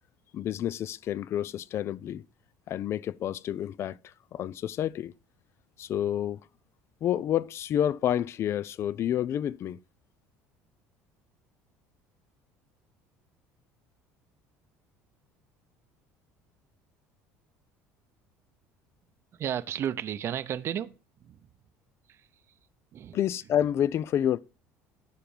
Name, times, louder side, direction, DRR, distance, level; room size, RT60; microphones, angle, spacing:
voice 1, 0.3-2.2 2.7-5.1 5.8-6.4 7.0-9.8 23.1-24.4, left 10 dB, 50° left, 0.5 m, -29 dB
voice 2, 19.3-20.9 21.2-21.4 22.1-22.3 22.9-23.2, right 10 dB, 45° right, 0.7 m, -33 dB
11.5 x 4.5 x 7.2 m
supercardioid pair, 105°, 6 cm